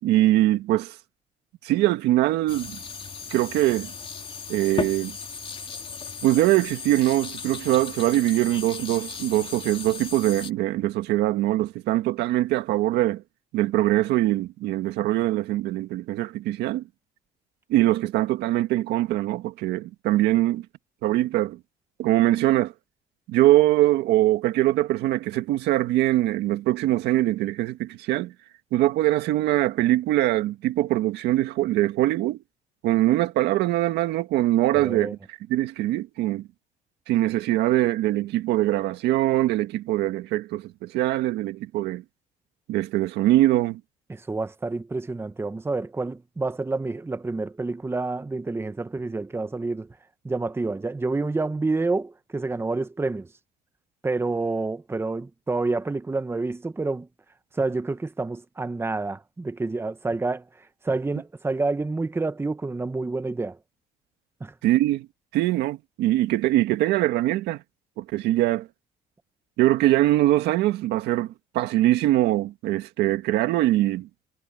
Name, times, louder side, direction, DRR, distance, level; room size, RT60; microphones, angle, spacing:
voice 1, 0.0-1.0 1.6-2.8 3.3-3.9 4.5-5.2 6.2-13.2 13.5-16.8 17.7-20.7 21.0-21.6 22.0-22.7 23.3-28.3 28.7-32.4 32.8-36.5 37.1-42.0 42.7-43.8 64.6-65.1 65.3-67.6 68.0-68.7 69.6-74.1, right 15 dB, 85° right, 1.8 m, -22 dB
sound 1, 2.5-10.5, left 5 dB, 30° left, 3.1 m, -36 dB
voice 2, 34.7-35.1 44.1-49.9 50.2-53.3 54.0-57.1 57.6-60.4 60.8-63.6 64.4-64.5, right 3 dB, 15° right, 1.2 m, -28 dB
cardioid pair, 110°, 17 cm